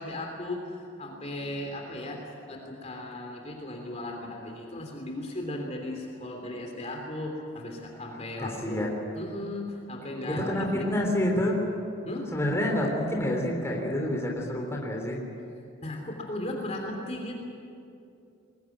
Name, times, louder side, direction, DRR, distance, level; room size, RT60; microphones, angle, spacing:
voice 1, 0.0-11.1 12.0-12.3 15.8-17.4, left 1 dB, 30° left, 1 dB, 3.2 m, -36 dB
voice 2, 8.4-8.9 10.3-11.6 12.3-15.2, left 1 dB, 15° left, -1 dB, 3.4 m, -28 dB
22.0 x 21.0 x 9.3 m, 2.5 s
head